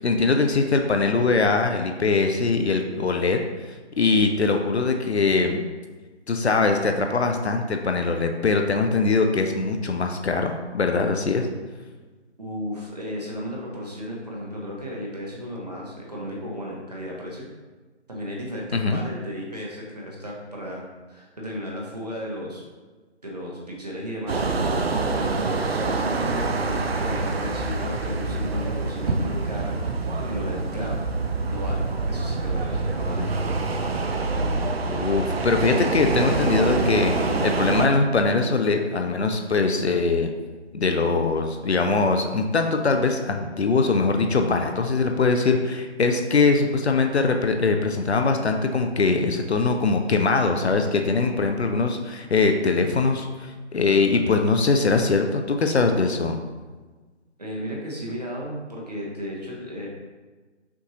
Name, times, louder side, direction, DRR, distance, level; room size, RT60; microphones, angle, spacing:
voice 1, 0.0-3.4 4.0-5.6 6.3-11.5 18.7-19.0 33.2-33.3 34.9-40.3 40.7-56.4, left 4 dB, 65° left, 5 dB, 0.5 m, -22 dB
voice 2, 12.4-17.4 18.1-20.8 21.1-22.6 23.2-31.0 31.5-33.8 57.4-59.9, equal, 35° right, -3 dB, 0.8 m, -34 dB
sound 1, 24.3-37.9, right 3 dB, 60° right, 0.5 m, -26 dB
5.8 x 2.6 x 2.9 m, 1.3 s
figure-of-eight pair, 165°, 35 cm